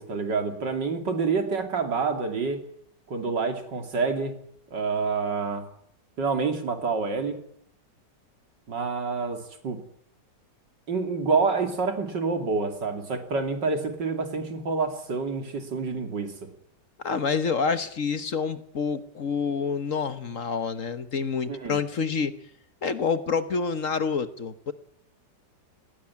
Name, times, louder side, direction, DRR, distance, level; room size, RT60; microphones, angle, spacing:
voice 1, 0.0-2.6 3.1-4.3 4.7-5.6 6.2-7.4 8.7-9.4 9.6-9.8 10.9-16.3 21.5-21.8, right 4 dB, 75° right, 6 dB, 3.4 m, -27 dB
voice 2, 17.0-22.3 22.8-24.7, left 5 dB, 50° left, 12 dB, 1.4 m, -27 dB
19.5 x 16.5 x 9.9 m, 0.69 s
omnidirectional pair, 1.9 m